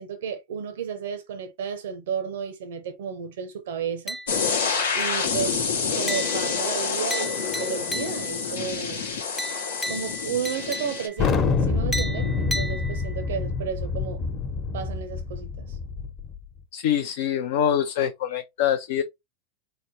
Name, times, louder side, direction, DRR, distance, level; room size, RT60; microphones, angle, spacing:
voice 1, 0.0-4.2 4.9-5.7 5.9-9.1 9.9-14.2 14.7-15.8, right 7 dB, 80° right, 0.6 m, -33 dB
sound 1, 4.1-4.6 5.0-5.4 6.1-8.5 9.4-11.3 11.9-13.3, equal, 15° left, 0.4 m, -35 dB
sound 2, 4.3-11.1, left 6 dB, 90° left, 0.9 m, -27 dB
Thunder, 11.2-16.3, left 4 dB, 40° left, 0.9 m, -26 dB
voice 2, 16.7-19.0, left 9 dB, 70° left, 0.4 m, -24 dB
3.9 x 2.1 x 3.2 m
hypercardioid pair, 100°, 0 cm